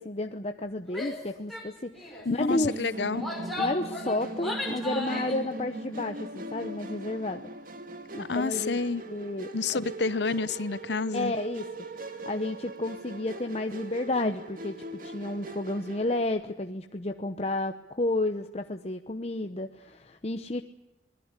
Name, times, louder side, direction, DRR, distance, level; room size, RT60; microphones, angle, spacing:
voice 1, 0.0-2.7 3.6-7.5 8.1-8.8 9.1-9.5 11.1-11.7 11.9-14.8 15.0-20.6, left 2 dB, 35° left, 0.9 m, -31 dB
Female speech woman speaking / Yell, 0.9-1.2 1.5-1.7 2.0-2.3 3.0-5.4, left 2 dB, ahead, 5.3 m, -35 dB
voice 2, 2.2-3.3 8.2-9.0 9.5-11.3, left 4 dB, 65° left, 0.8 m, -29 dB
Musical instrument, 2.5-16.3, right 1 dB, 45° right, 2.1 m, -40 dB
25.5 x 20.5 x 8.2 m
head